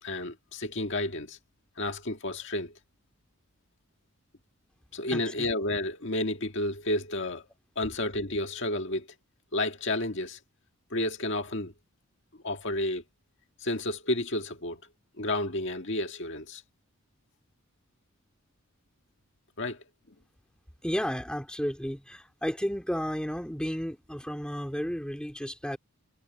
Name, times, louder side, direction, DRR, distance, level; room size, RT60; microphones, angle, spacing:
voice 1, 0.0-1.4 1.8-2.8 4.9-7.4 7.8-9.1 9.5-10.4 10.9-11.7 12.4-13.0 13.6-14.8 15.2-16.6 19.6-19.8, left 1 dB, 60° left, 1.8 m, -31 dB
voice 2, 20.8-25.8, equal, 5° left, 3.4 m, -32 dB
head